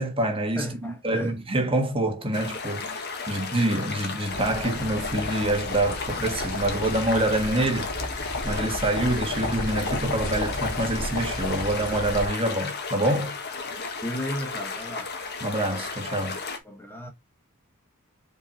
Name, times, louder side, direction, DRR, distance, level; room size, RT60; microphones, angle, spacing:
voice 1, 0.0-7.9 8.4-13.3 15.4-16.4, right 1 dB, 25° right, 1.5 m, -26 dB
voice 2, 0.6-1.4 14.0-15.1 16.6-17.1, equal, 10° left, 1.2 m, -34 dB
sound 1, 2.3-16.6, left 4 dB, 50° left, 1.5 m, -34 dB
sound 2, 4.3-12.3, left 2 dB, 75° left, 3.1 m, -32 dB
5.3 x 4.6 x 4.2 m
head